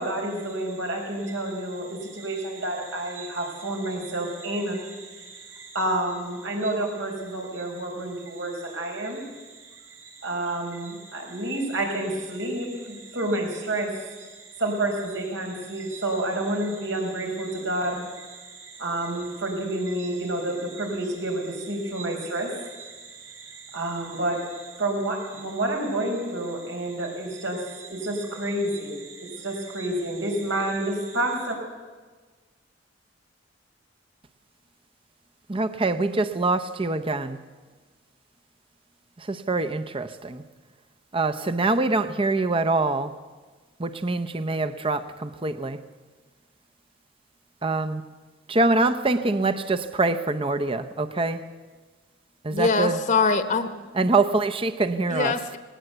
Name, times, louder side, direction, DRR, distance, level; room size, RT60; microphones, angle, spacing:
voice 1, 0.0-31.6, right 1 dB, 90° right, 1 dB, 5.0 m, -30 dB
voice 2, 35.5-37.4 39.2-40.4 41.1-43.1 43.8-45.8 47.6-48.0 48.5-51.4 52.4-53.0 53.9-55.3, right 3 dB, 30° right, 10 dB, 0.7 m, -24 dB
voice 3, 52.5-53.9 55.1-55.6, left 4 dB, 45° left, 10 dB, 1.0 m, -23 dB
19.0 x 18.0 x 8.0 m, 1.4 s
head